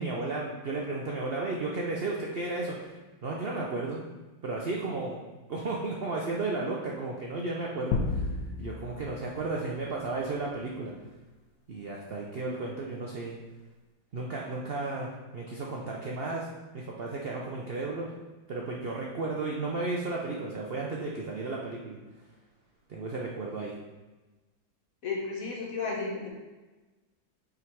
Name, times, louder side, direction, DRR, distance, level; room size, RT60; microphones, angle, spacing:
voice 1, 0.0-2.9 3.2-4.0 4.4-5.2 5.5-8.3 8.6-10.9 11.7-13.4 14.1-16.5 16.7-18.1 18.5-22.0 22.9-23.7, right 3 dB, 80° right, -2 dB, 0.5 m, -33 dB
sound 1, 7.9-10.5, left 4 dB, 75° left, 1.2 m, -33 dB
voice 2, 25.0-26.3, left 4 dB, 50° left, -2 dB, 1.5 m, -33 dB
5.9 x 3.9 x 4.6 m, 1.2 s
omnidirectional pair, 1.9 m